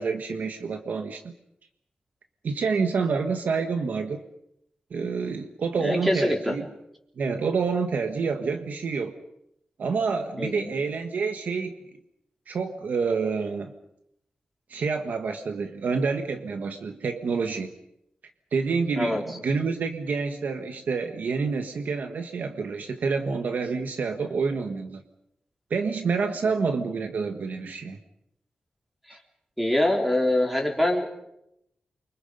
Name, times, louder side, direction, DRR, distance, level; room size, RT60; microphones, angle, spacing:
voice 1, 0.0-1.3 2.4-4.2 4.9-6.6 7.2-9.2 9.8-11.8 12.5-13.7 14.7-17.7 18.5-25.0 25.7-28.0, right 5 dB, 80° right, 6 dB, 1.5 m, -28 dB
voice 2, 5.8-6.5 10.4-10.6 19.0-19.2 29.6-31.1, left 1 dB, 5° right, 1 dB, 4.0 m, -24 dB
29.0 x 25.0 x 5.4 m, 0.80 s
wide cardioid pair, 170°, 3 cm